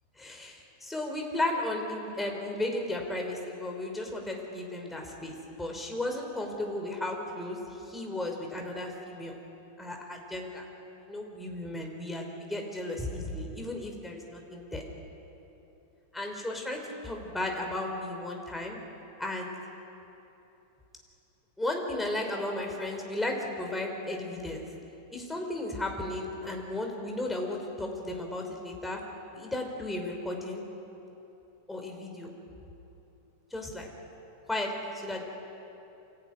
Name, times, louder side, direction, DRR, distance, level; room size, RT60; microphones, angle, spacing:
voice 1, 0.2-7.6 7.8-9.3 9.8-10.6 11.0-14.8 16.1-18.8 19.2-19.6 21.6-24.6 25.1-29.0 29.3-30.6 31.7-32.3 33.5-33.9 34.5-35.2, left 1 dB, ahead, 1 dB, 2.7 m, -34 dB
25.0 x 17.5 x 9.7 m, 2.9 s
omnidirectional pair, 3.6 m